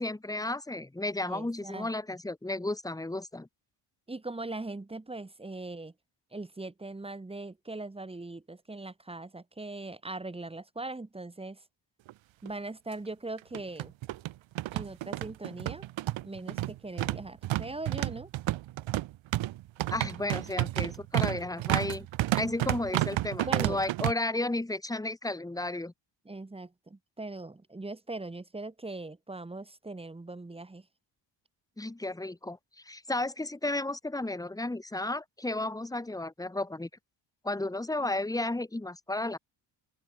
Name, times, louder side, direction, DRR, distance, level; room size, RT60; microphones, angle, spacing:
voice 1, 0.0-3.5 19.9-22.1 22.4-25.9 31.8-32.6 32.9-36.9 37.4-39.4, left 2 dB, 10° left, 1.7 m, -33 dB
voice 2, 1.2-2.2 4.1-5.9 6.3-11.6 12.4-13.9 14.7-18.3 23.4-23.8 26.2-30.8, right 2 dB, 15° right, 1.6 m, -40 dB
sound 1, 12.1-12.2 12.5-12.6 13.4-24.1, right 16 dB, 90° right, 1.5 m, -31 dB
open air
cardioid pair, 120°, 45 cm